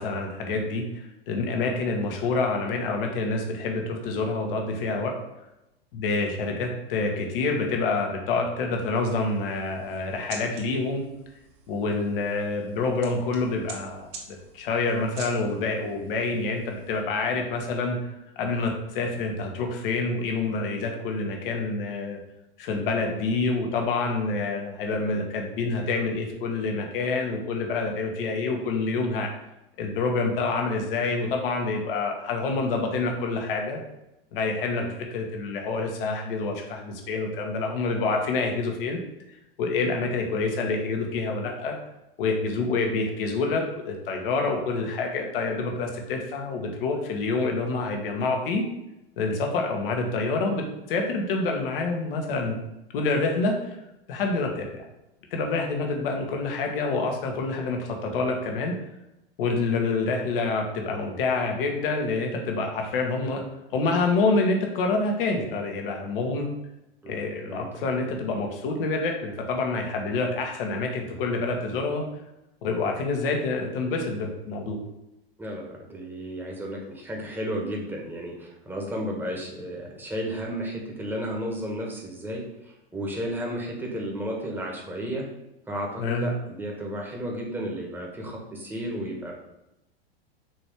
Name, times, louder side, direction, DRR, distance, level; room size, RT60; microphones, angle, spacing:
voice 1, 0.0-5.2 5.9-11.0 11.7-18.0 18.4-22.2 22.6-29.3 29.8-33.8 34.3-34.8 35.1-39.0 39.6-41.8 42.2-48.6 49.2-52.5 52.9-53.8 54.1-54.8 55.3-58.7 59.4-63.4 63.7-66.4 67.1-72.0 72.6-74.8 86.0-86.3, left 3 dB, 65° left, 2 dB, 1.5 m, -27 dB
sound 1, 9.0-17.0, right 4 dB, 50° right, 1.6 m, -47 dB
voice 2, 67.0-67.8 75.4-85.3 85.7-89.3, equal, 5° right, -1 dB, 1.5 m, -33 dB
6.2 x 3.1 x 5.0 m, 0.89 s
hypercardioid pair, 110°, 30 cm